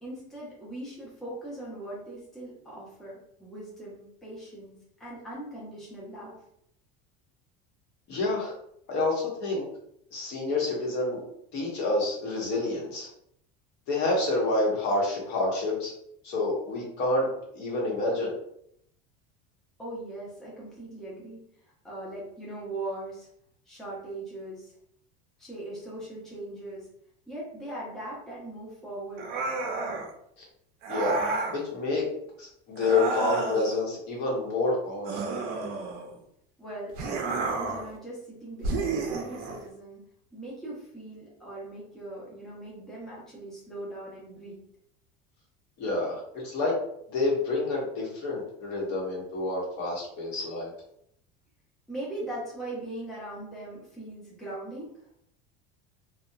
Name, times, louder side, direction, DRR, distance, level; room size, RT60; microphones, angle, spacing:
voice 1, 0.0-6.3 19.8-21.4 21.8-23.3 23.7-24.7 25.4-26.9 27.3-29.3 36.6-40.0 40.3-44.6 51.9-54.9, right 1 dB, ahead, -7 dB, 0.6 m, -40 dB
voice 2, 8.1-8.5 8.9-9.7 10.1-11.2 11.5-13.1 13.9-15.9 16.2-17.3 17.5-18.3 30.4-30.5 30.9-32.1 32.4-35.4 45.8-46.8 47.1-50.7, left 2 dB, 55° left, -3 dB, 1.0 m, -28 dB
sound 1, 29.2-30.1 30.8-31.6 32.8-33.8 35.1-36.2 37.0-37.9 38.6-39.6, right 3 dB, 50° right, 0.5 m, -31 dB
2.7 x 2.2 x 2.3 m, 0.72 s
cardioid pair, 150°, 21 cm